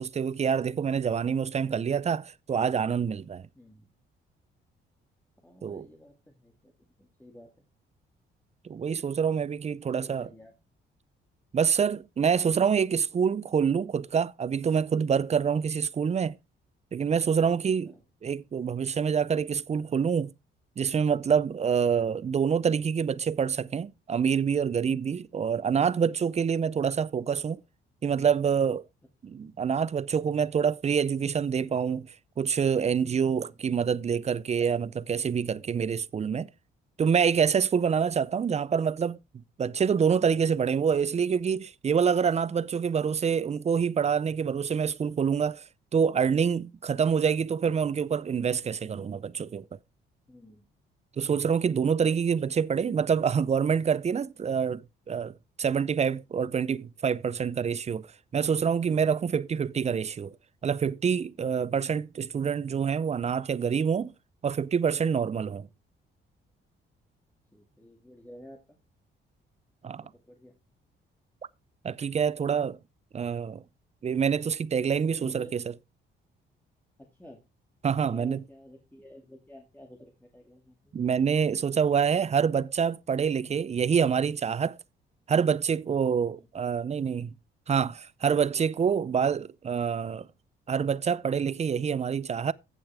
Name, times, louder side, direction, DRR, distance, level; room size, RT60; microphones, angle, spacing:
voice 1, 0.0-3.5 5.6-5.9 8.6-10.3 11.5-16.4 16.9-17.9 18.2-20.3 20.8-27.6 28.0-28.8 29.2-32.1 32.4-36.5 37.0-45.6 45.9-49.6 51.2-58.1 58.3-60.4 60.6-64.1 64.4-65.7 69.8-70.0 71.8-72.8 73.1-73.6 74.0-75.6 77.8-78.4 80.9-84.8 85.3-87.3 87.7-90.3 90.7-92.5, right 7 dB, 35° right, 0.5 m, -26 dB
voice 2, 3.5-3.9 5.4-7.7 9.9-10.5 17.8-18.0 29.2-29.4 33.3-33.5 50.3-50.7 65.5-65.7 67.5-68.8 70.0-70.6 75.0-75.6 77.0-77.4 78.0-80.9 86.3-86.5, left 1 dB, 10° left, 2.4 m, -52 dB
15.0 x 6.9 x 3.5 m
cardioid pair, 90°, 20 cm